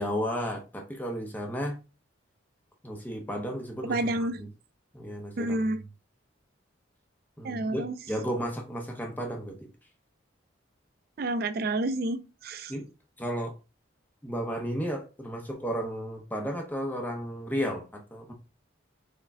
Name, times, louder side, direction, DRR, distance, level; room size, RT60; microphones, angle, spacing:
voice 1, 0.0-1.8 2.8-4.5 4.9-5.8 7.4-9.7 12.7-12.9 13.2-13.5 14.2-18.3, equal, 10° left, 0.6 m, -33 dB
voice 2, 3.8-4.4 5.4-5.8 7.4-7.9 11.2-12.7, right 2 dB, 50° right, 0.4 m, -29 dB
4.4 x 2.2 x 3.5 m
head